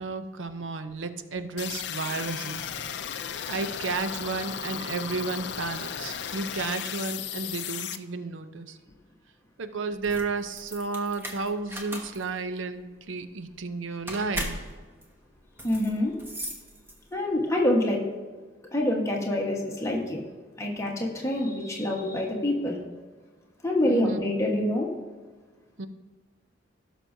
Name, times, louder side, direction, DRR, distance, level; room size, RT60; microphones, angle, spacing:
voice 1, 0.0-2.7 3.5-8.8 9.6-14.6 23.8-24.2 25.8-25.9, right 3 dB, 85° right, 9 dB, 0.6 m, -32 dB
sound 1, 1.6-8.0, left 8 dB, 60° left, 0.5 m, -35 dB
sound 2, 9.9-17.3, equal, 10° right, 1.0 m, -39 dB
voice 2, 15.6-16.1 17.1-18.1 18.7-20.2 20.6-22.8 23.6-24.9, left 1 dB, 15° left, -2 dB, 1.3 m, -26 dB
16.5 x 6.1 x 2.7 m, 1.4 s
head